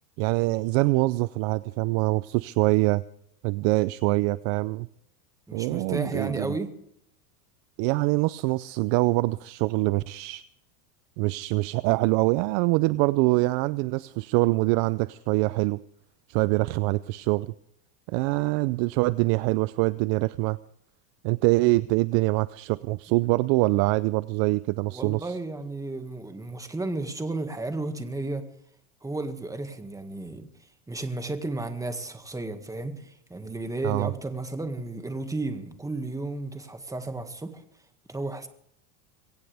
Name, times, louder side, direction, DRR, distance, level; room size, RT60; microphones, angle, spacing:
voice 1, 0.2-3.0 3.4-4.9 5.5-6.6 7.8-10.4 11.2-15.8 16.3-17.5 18.1-20.6 21.2-25.4 33.8-34.1, right 22 dB, 45° right, 0.5 m, -24 dB
voice 2, 5.5-6.7 24.9-28.5 29.0-30.5 30.9-37.6 38.1-38.5, right 2 dB, 5° right, 1.8 m, -33 dB
22.5 x 17.5 x 3.4 m
supercardioid pair, 120°, 49 cm